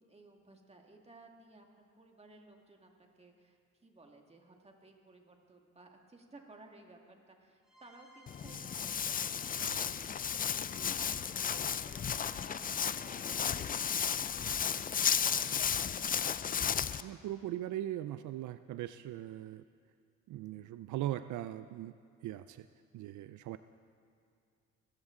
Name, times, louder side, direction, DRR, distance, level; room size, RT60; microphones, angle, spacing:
voice 1, 0.0-17.2, right 2 dB, 20° right, 2 dB, 2.1 m, -59 dB
sound 1, 7.6-13.9, left 2 dB, ahead, 4.5 m, -62 dB
Walk footsteps, 8.3-17.0, left 8 dB, 30° left, 0.4 m, -34 dB
voice 2, 17.0-19.6 20.3-21.9 22.2-22.7 22.9-23.6, right 13 dB, 75° right, 12 dB, 0.5 m, -40 dB
22.5 x 14.5 x 3.8 m, 2.3 s
cardioid pair, 90°, 30 cm